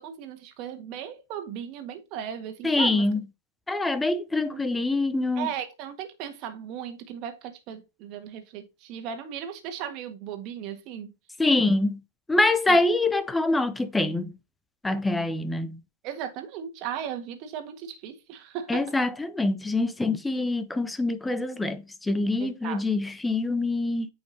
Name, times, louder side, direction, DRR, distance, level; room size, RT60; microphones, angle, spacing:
voice 1, 0.0-3.1 4.5-4.6 5.3-11.1 12.7-12.8 16.0-18.9 22.4-22.8, right 9 dB, 35° right, 1.7 m, -36 dB
voice 2, 2.6-3.2 3.7-5.5 11.4-12.0 12.3-14.3 14.8-15.8 18.7-24.1, left 2 dB, 5° left, 0.7 m, -25 dB
9.0 x 5.3 x 2.8 m
hypercardioid pair, 145°, 0 cm